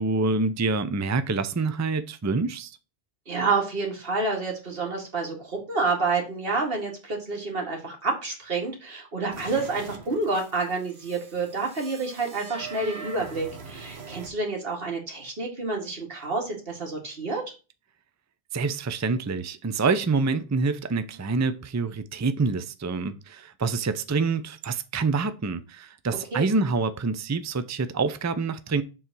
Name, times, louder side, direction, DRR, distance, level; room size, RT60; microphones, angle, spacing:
voice 1, 0.0-2.8 18.5-28.8, right 4 dB, 20° right, 0.5 m, -26 dB
voice 2, 3.3-17.4 26.3-26.5, right 3 dB, 65° right, 2.2 m, -29 dB
sound 1, 9.3-14.3, right 5 dB, 80° right, 1.3 m, -43 dB
6.8 x 3.9 x 6.0 m
omnidirectional pair, 1.0 m